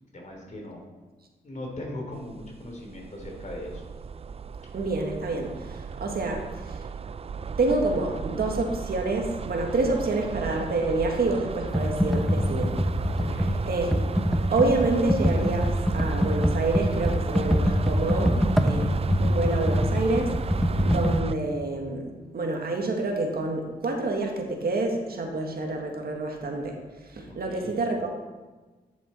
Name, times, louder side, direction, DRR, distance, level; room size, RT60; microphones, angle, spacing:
voice 1, 0.1-0.8 1.4-3.8 13.2-13.5 27.3-27.8, left 1 dB, 45° left, 0 dB, 3.1 m, -39 dB
sound 1, 2.1-21.3, right 6 dB, 35° right, 0.3 m, -34 dB
voice 2, 4.7-6.8 7.6-12.8 13.7-14.0 14.5-18.9 19.2-20.4 20.8-28.1, right 2 dB, 65° right, 2 dB, 1.7 m, -28 dB
Computer keyboard, 11.7-21.2, equal, ahead, 0.8 m, -24 dB
9.8 x 7.0 x 4.4 m, 1.3 s
cardioid pair, 60°, 17 cm